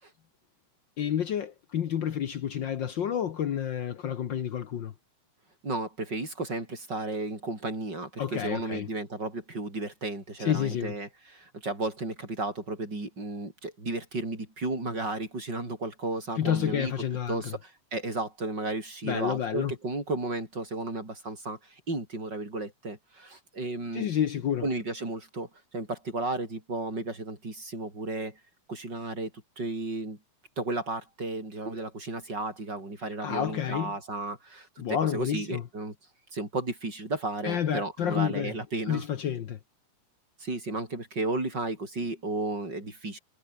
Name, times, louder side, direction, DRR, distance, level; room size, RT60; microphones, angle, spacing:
voice 1, 1.0-4.9 8.2-8.9 10.4-10.9 16.4-17.6 19.0-19.7 23.9-24.7 33.2-33.9 34.8-35.6 37.4-38.5 38.9-39.6, left 9 dB, 80° left, 1.0 m, -29 dB
voice 2, 5.6-16.9 17.3-24.1 24.6-28.4 28.7-29.3 29.6-30.2 30.6-35.9 36.3-39.0 40.4-43.2, right 2 dB, 30° right, 8.3 m, -33 dB
omnidirectional pair, 3.7 m